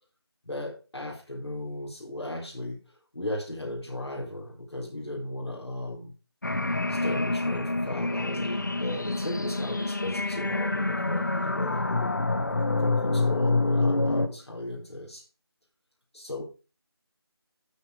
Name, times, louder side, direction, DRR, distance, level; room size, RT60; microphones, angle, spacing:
voice 1, 0.4-2.8 3.1-6.1 6.9-12.2 12.8-15.2 16.1-16.4, left 1 dB, 80° left, -4 dB, 4.1 m, -36 dB
sound 1, 6.4-14.3, left 2 dB, 45° left, 1.0 m, -27 dB
12.5 x 5.0 x 5.0 m, 0.35 s
figure-of-eight pair, 175°, 14 cm